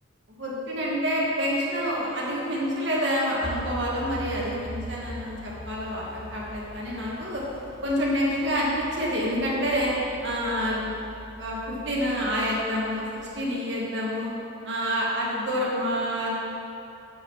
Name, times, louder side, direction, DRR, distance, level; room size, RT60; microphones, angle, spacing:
voice 1, 0.4-7.4 7.8-9.9 10.2-10.9 11.4-13.1 13.3-14.3 14.6-16.3, equal, 65° right, -5 dB, 1.8 m, -27 dB
sound 1, 3.4-12.8 13.2-13.3, right 1 dB, 25° right, 0.9 m, -41 dB
8.4 x 6.3 x 7.1 m, 2.7 s
head